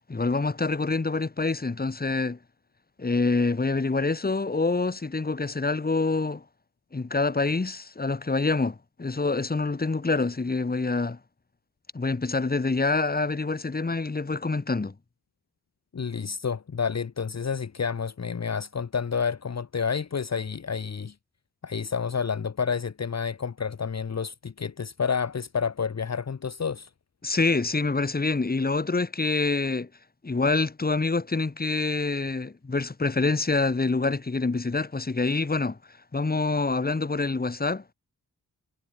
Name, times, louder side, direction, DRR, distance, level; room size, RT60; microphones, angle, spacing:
voice 1, 0.1-2.4 3.0-6.4 6.9-11.2 11.9-14.9 27.2-29.9 30.2-35.8 36.1-37.9, left 3 dB, 25° left, 2.2 m, -26 dB
voice 2, 15.9-21.1 21.6-26.9, left 6 dB, 45° left, 1.5 m, -29 dB
wide cardioid pair, 115°, 35 cm